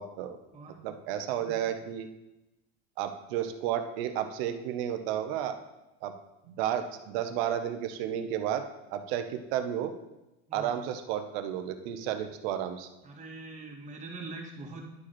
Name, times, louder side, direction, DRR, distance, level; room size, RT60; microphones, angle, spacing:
voice 1, 0.0-0.4 0.8-2.1 3.0-5.6 6.0-6.1 6.5-9.9 10.5-12.9, right 10 dB, 70° right, 8 dB, 1.0 m, -32 dB
voice 2, 13.0-14.8, right 3 dB, 25° right, -2 dB, 2.3 m, -43 dB
11.0 x 4.8 x 4.4 m, 0.96 s
supercardioid pair, 105°, 32 cm